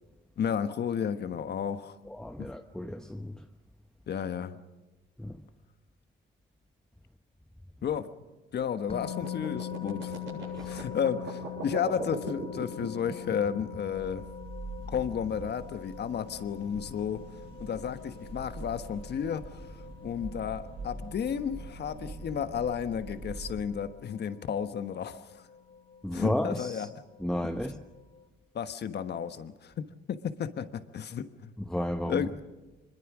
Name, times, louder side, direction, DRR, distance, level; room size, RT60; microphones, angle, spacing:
voice 1, 0.4-2.0 2.4-2.5 4.1-4.6 7.8-8.1 8.5-10.4 10.7-14.2 14.9-17.2 17.6-19.7 20.0-25.4 26.1-26.9 28.5-31.5 32.1-32.4, left 8 dB, 55° left, 1.3 m, -33 dB
voice 2, 2.1-3.4 5.2-5.4 10.4-10.8 26.0-26.9 27.2-27.8 31.6-32.3, left 1 dB, 5° left, 0.9 m, -33 dB
sound 1, 8.9-28.3, left 9 dB, 30° left, 3.8 m, -44 dB
sound 2, 9.2-14.4, right 4 dB, 80° right, 7.9 m, -40 dB
sound 3, 13.9-23.7, right 3 dB, 45° right, 7.8 m, -44 dB
24.5 x 21.0 x 6.1 m
cardioid pair, 90°, 20 cm